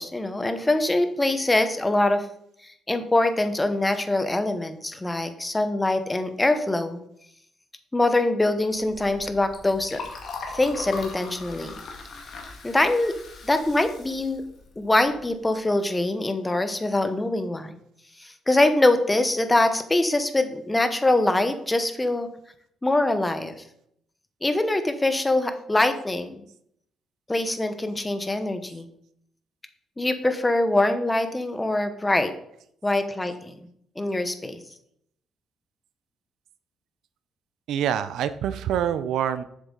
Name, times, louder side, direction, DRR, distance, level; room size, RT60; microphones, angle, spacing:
voice 1, 0.0-2.3 2.6-7.0 7.9-10.0 10.5-11.7 12.6-13.2 13.4-14.4 14.8-17.8 18.2-22.3 22.8-23.6 24.4-26.3 27.3-28.9 30.0-32.3 32.8-33.6 34.0-34.6, left 2 dB, 15° left, 9 dB, 0.9 m, -23 dB
Liquid, 8.7-15.4, left 4 dB, 60° left, 1.9 m, -40 dB
voice 2, 37.7-39.4, right 9 dB, 80° right, 12 dB, 0.6 m, -26 dB
7.6 x 6.7 x 3.9 m, 0.71 s
cardioid pair, 90°, 0 cm